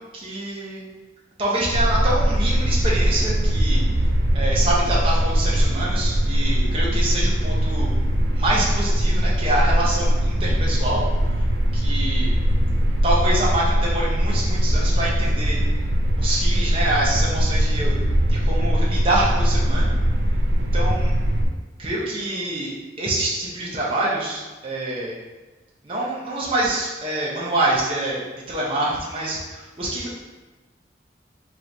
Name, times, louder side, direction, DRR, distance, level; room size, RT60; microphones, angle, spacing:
voice 1, 0.1-0.8 1.4-3.8 4.3-7.9 8.3-11.0 11.3-11.4 11.7-12.3 13.0-15.6 16.2-18.0 18.3-19.9 20.7-21.1 21.8-22.7 23.0-25.2 25.8-30.2, right 1 dB, 30° right, -6 dB, 0.7 m, -26 dB
sound 1, 1.7-21.5, equal, 85° right, 0.5 m, -21 dB
4.5 x 3.0 x 2.6 m, 1.2 s
head